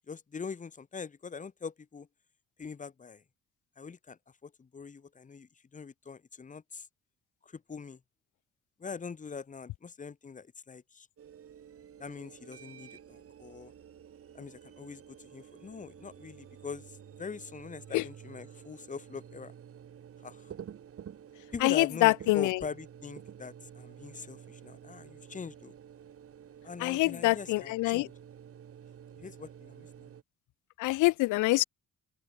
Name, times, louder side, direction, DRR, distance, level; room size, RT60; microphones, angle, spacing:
voice 1, 0.1-2.1 2.6-3.2 3.8-6.9 7.4-8.0 8.8-11.1 12.0-13.7 14.3-19.5 20.2-20.5 21.5-25.7 26.6-28.1 29.1-30.1, left 5 dB, 25° left, 0.9 m, -43 dB
sound 1, 11.2-30.2, right 9 dB, 50° right, 1.4 m, -50 dB
voice 2, 21.6-22.6 26.8-28.1 30.8-31.6, left 20 dB, 80° left, 0.5 m, -25 dB
open air
cardioid pair, 90°, 30 cm